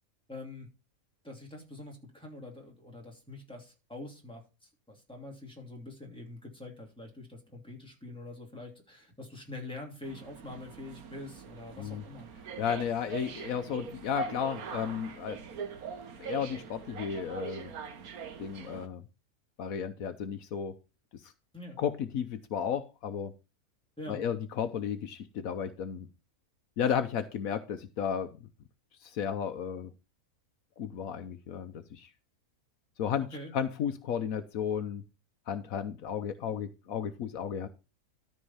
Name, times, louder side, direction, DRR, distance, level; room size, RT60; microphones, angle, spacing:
voice 1, 0.3-0.7 1.2-12.3 21.5-21.8 24.0-24.2 33.3-33.5, left 2 dB, 5° left, 2.6 m, -45 dB
sound 1, 10.0-18.9, right 5 dB, 85° right, 1.6 m, -42 dB
voice 2, 12.6-15.4 16.2-17.7 18.4-19.0 19.6-20.7 21.8-23.3 24.1-26.1 26.8-28.3 29.0-29.9 30.8-32.1 33.0-33.3 33.5-35.0 35.5-37.7, left 8 dB, 75° left, 1.2 m, -33 dB
13.0 x 4.4 x 5.5 m
omnidirectional pair, 1.5 m